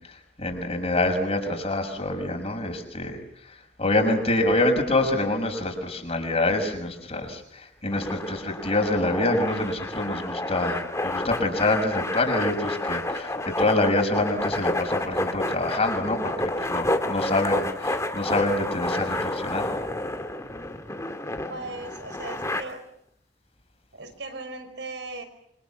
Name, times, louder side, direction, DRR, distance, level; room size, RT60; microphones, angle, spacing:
voice 1, 0.0-3.2 3.4-16.3 16.6-19.8, left 2 dB, 35° left, 4 dB, 6.2 m, -26 dB
sound 1, 7.9-22.6, left 1 dB, 15° left, 2.3 m, -30 dB
voice 2, 21.5-22.8 23.9-25.2, right 2 dB, 90° right, 8 dB, 5.5 m, -37 dB
27.5 x 26.0 x 7.3 m, 0.73 s
head